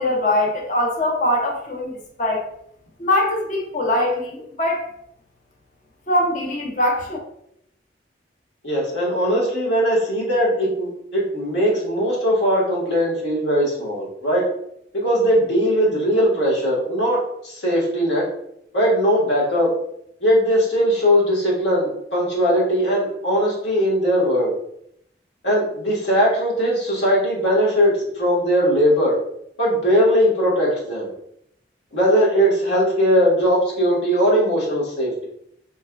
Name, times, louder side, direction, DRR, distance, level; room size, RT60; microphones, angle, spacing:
voice 1, 0.0-2.5 3.0-4.8 6.1-7.2, left 1 dB, 45° left, 0 dB, 0.6 m, -22 dB
voice 2, 8.6-14.5 14.9-18.3 18.7-19.7 20.2-24.5 25.4-29.2 29.6-31.1 31.9-35.3, equal, 85° left, -4 dB, 1.4 m, -19 dB
3.4 x 3.2 x 2.2 m, 0.73 s
head